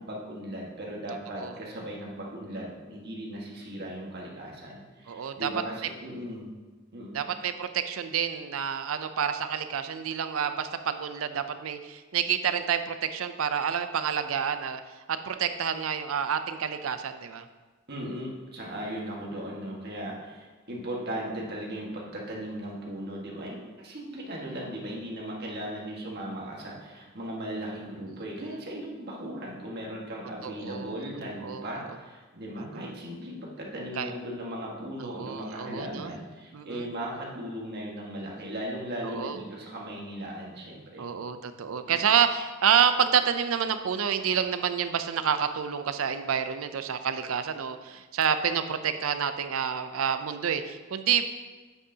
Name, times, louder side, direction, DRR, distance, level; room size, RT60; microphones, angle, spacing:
voice 1, 0.0-6.5 6.9-7.1 17.9-41.1 41.9-42.0, right 1 dB, 50° right, -3 dB, 1.6 m, -37 dB
voice 2, 5.1-5.5 7.1-14.8 15.1-17.5 28.1-28.2 28.5-28.6 30.4-31.0 31.4-31.7 32.5-33.0 34.0-34.1 35.0-36.1 36.5-36.9 39.0-39.4 41.0-51.2, right 8 dB, 75° right, 10 dB, 0.5 m, -28 dB
8.1 x 7.8 x 2.8 m, 1.3 s
head